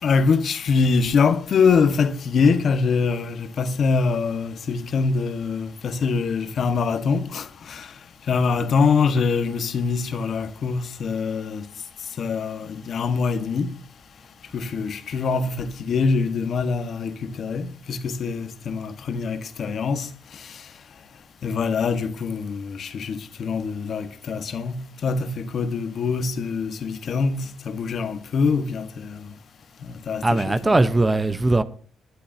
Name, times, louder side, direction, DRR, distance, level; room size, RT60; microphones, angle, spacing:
voice 1, 0.0-7.9 8.3-11.7 12.2-13.7 14.5-20.6 21.4-29.3 29.8-30.8, left 5 dB, 55° left, 1.5 m, -24 dB
voice 2, 30.2-31.6, right 2 dB, 20° right, 1.0 m, -19 dB
21.0 x 12.0 x 2.9 m
cardioid pair, 90°, 0 cm